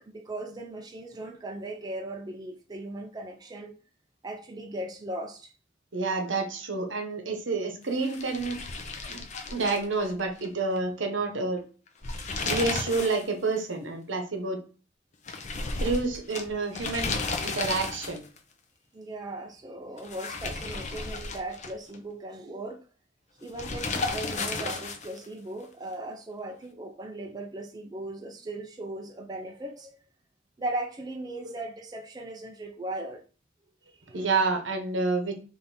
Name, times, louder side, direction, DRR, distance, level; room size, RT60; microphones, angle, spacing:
voice 1, 0.0-3.8 4.2-5.5 12.1-12.6 18.9-22.8 23.4-30.0 30.6-33.2 33.9-34.4, right 1 dB, 20° right, 0.4 m, -38 dB
voice 2, 5.9-8.6 9.1-9.2 9.5-11.6 12.4-14.6 15.8-17.1 17.4-18.2 31.4-31.6 34.1-35.3, right 3 dB, 70° right, 0.9 m, -29 dB
sound 1, 8.0-10.5 10.8-10.9 11.9-13.3 13.6-13.7 15.3-18.4 20.0-22.0 23.6-25.3, left 3 dB, 40° left, 0.5 m, -33 dB
3.5 x 2.6 x 4.2 m
head